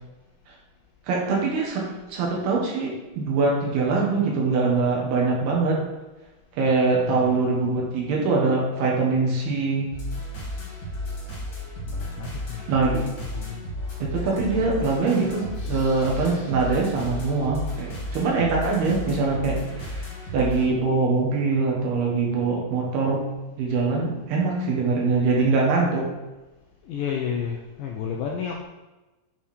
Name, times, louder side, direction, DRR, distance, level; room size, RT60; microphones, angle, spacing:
voice 1, 1.1-1.8 2.1-5.8 6.6-9.9 12.7-13.0 14.0-20.1 20.3-23.2 23.6-26.1, right 4 dB, 75° right, -2 dB, 3.4 m, -23 dB
voice 2, 6.9-7.4 11.9-12.7 13.3-13.6 26.8-28.6, left 7 dB, 80° left, 0 dB, 2.0 m, -31 dB
sound 1, 9.9-20.7, left 1 dB, 35° left, 1.7 m, -33 dB
9.1 x 3.7 x 4.3 m, 1.1 s
omnidirectional pair, 4.6 m